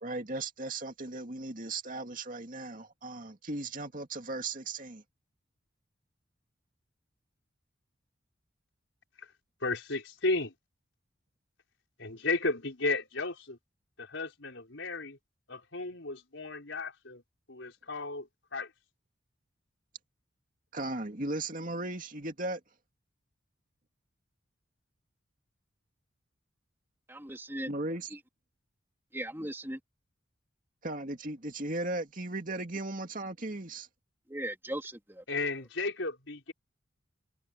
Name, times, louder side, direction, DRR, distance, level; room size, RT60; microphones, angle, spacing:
voice 1, 0.0-5.0 20.7-22.6 27.6-28.2 30.8-33.9, right 2 dB, 45° right, 2.4 m, -37 dB
voice 2, 9.6-10.5 12.0-13.6 14.0-15.2 15.5-17.2 17.5-18.7 35.3-36.5, left 3 dB, 70° left, 4.7 m, -34 dB
voice 3, 27.1-27.7 29.1-29.8 34.3-35.2, right 1 dB, 10° right, 3.0 m, -38 dB
head